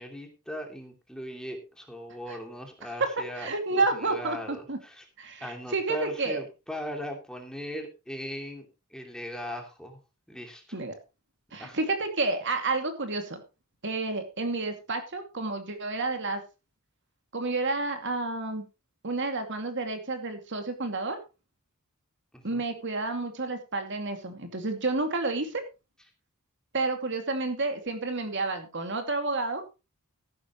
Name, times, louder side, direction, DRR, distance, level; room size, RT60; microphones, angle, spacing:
voice 1, 0.0-5.0 5.4-10.0 10.3-10.6 11.6-11.8 22.3-22.6, equal, 5° left, 3 dB, 2.7 m, -39 dB
voice 2, 3.4-4.8 5.2-6.4 10.7-10.9 11.5-13.4 13.8-16.4 17.3-18.7 19.0-21.2 22.4-25.6 26.7-29.6, right 3 dB, 55° right, 6 dB, 2.5 m, -30 dB
14.5 x 11.5 x 3.1 m, 0.28 s
head